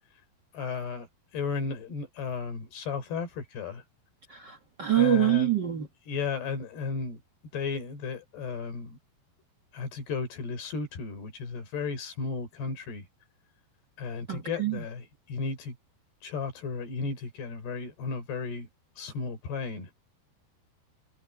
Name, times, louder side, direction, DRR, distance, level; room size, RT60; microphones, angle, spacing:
voice 1, 0.5-1.1 1.3-3.8 4.9-5.6 6.1-7.2 7.5-9.0 9.7-13.1 14.0-15.8 16.2-18.7 19.0-19.9, left 5 dB, 70° left, 5.9 m, -34 dB
voice 2, 4.3-5.9 14.3-14.8, right 11 dB, 70° right, 1.0 m, -25 dB
omnidirectional pair, 4.9 m